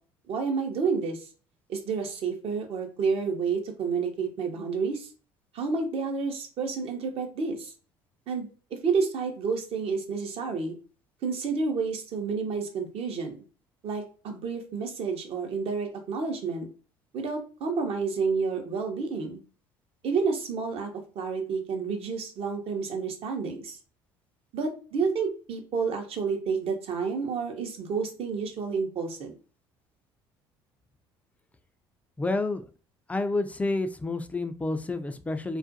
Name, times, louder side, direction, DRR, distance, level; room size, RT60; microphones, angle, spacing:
voice 1, 0.3-1.3 1.7-5.1 5.5-7.7 8.3-10.7 11.2-13.4 13.8-16.7 17.1-19.4 20.0-20.9 21.2-23.8 24.5-29.4, right 5 dB, 50° right, 4 dB, 0.7 m, -30 dB
voice 2, 32.2-32.7 33.1-35.6, left 2 dB, 10° left, 9 dB, 0.3 m, -29 dB
2.4 x 2.2 x 2.6 m, 0.38 s
hypercardioid pair, 60°, 12 cm